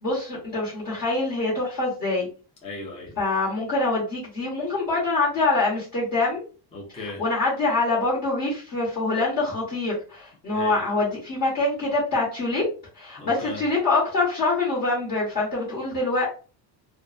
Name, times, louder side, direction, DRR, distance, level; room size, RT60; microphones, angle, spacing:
voice 1, 0.0-2.3 3.2-6.4 7.0-12.6 12.9-16.3, left 2 dB, 40° left, 1.2 m, -25 dB
voice 2, 2.6-3.2 6.7-7.2 10.5-10.8 13.2-13.6, left 2 dB, 15° left, 0.5 m, -37 dB
2.6 x 2.3 x 2.4 m
cardioid pair, 175°, 41 cm